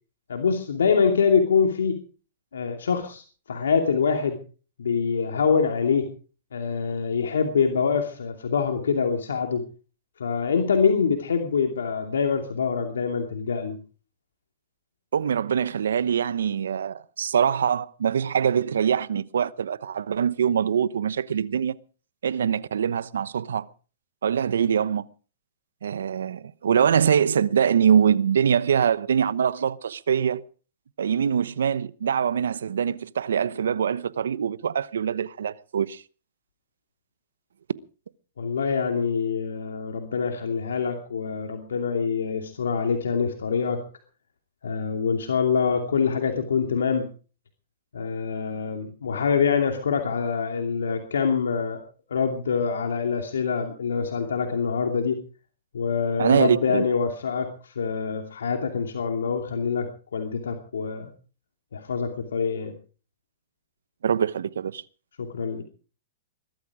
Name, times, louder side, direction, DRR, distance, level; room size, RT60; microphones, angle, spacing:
voice 1, 0.3-2.0 2.5-4.4 4.8-6.1 6.5-9.6 10.2-13.8 38.4-43.8 44.6-47.1 47.9-51.8 52.1-55.2 55.7-59.9 60.1-61.1 61.7-62.7 65.2-65.6, left 6 dB, 90° left, 2.7 m, -25 dB
voice 2, 15.1-21.8 22.2-23.7 24.2-25.1 25.8-30.4 31.0-36.0 56.2-56.8 64.0-64.8, right 8 dB, 85° right, 0.9 m, -23 dB
21.0 x 13.0 x 4.9 m
hypercardioid pair, 130°, 0 cm